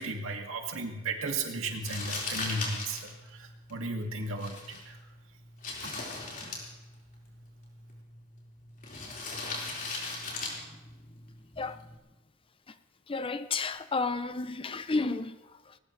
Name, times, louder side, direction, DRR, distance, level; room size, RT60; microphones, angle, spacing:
voice 1, 0.0-5.0 5.8-5.9, right 2 dB, 75° right, 2.3 m, -35 dB
Crumpling crinkling, 1.8-12.0, left 3 dB, 45° left, 4.5 m, -40 dB
voice 2, 10.4-10.8 11.1-11.2 11.5-11.9 12.7-12.8 13.1-15.8, left 3 dB, 25° left, 0.6 m, -33 dB
20.5 x 19.5 x 3.3 m
head